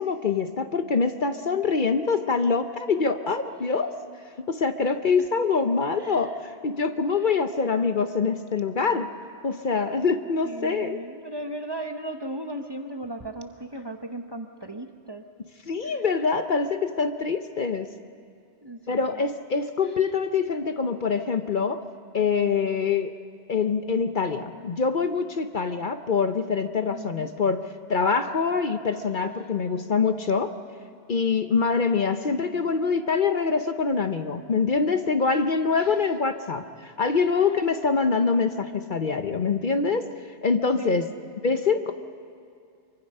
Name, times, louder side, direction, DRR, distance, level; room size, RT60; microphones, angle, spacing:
voice 1, 0.0-3.9 4.5-9.1 9.4-11.0 15.7-17.9 18.9-21.8 22.1-23.1 23.5-27.6 27.9-30.5 31.1-40.1 40.4-41.1 41.4-41.9, left 5 dB, 50° left, 8 dB, 0.9 m, -24 dB
voice 2, 5.9-6.4 7.2-7.4 10.4-15.3 15.8-16.0 18.6-19.3 19.8-20.0 26.9-27.3 35.8-36.1 37.4-37.5 40.8-41.0, right 1 dB, 25° right, 6 dB, 0.9 m, -37 dB
24.5 x 23.5 x 5.5 m, 2.5 s
omnidirectional pair, 1.2 m